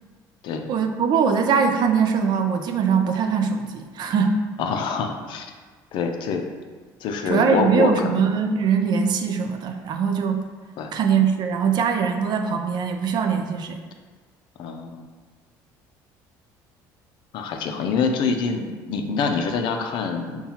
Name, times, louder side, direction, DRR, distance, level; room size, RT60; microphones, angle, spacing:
voice 1, 0.7-4.4 7.3-10.4 10.9-13.8, right 6 dB, 55° right, 5 dB, 0.4 m, -22 dB
voice 2, 4.6-5.5 5.9-6.4 7.0-8.2 10.8-10.9 14.6-15.1 17.3-20.5, left 5 dB, 65° left, 4 dB, 0.5 m, -25 dB
5.5 x 2.3 x 2.8 m, 1.4 s
supercardioid pair, 85°, 9 cm